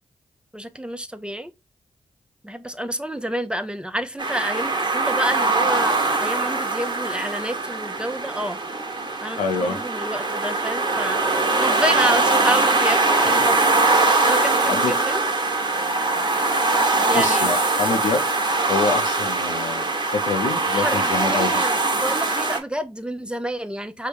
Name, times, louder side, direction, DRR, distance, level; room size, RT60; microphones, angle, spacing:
voice 1, 0.5-1.5 2.4-8.6 9.2-13.7 14.2-15.3 17.0-17.6 20.3-20.4 20.7-24.1, equal, 10° right, 0.5 m, -29 dB
sound 1, 4.2-22.6, right 3 dB, 35° right, 1.1 m, -22 dB
voice 2, 9.4-9.8 14.7-14.9 17.1-18.2 18.7-21.6, left 4 dB, 90° left, 0.6 m, -26 dB
4.5 x 2.1 x 3.3 m
supercardioid pair, 45°, 13 cm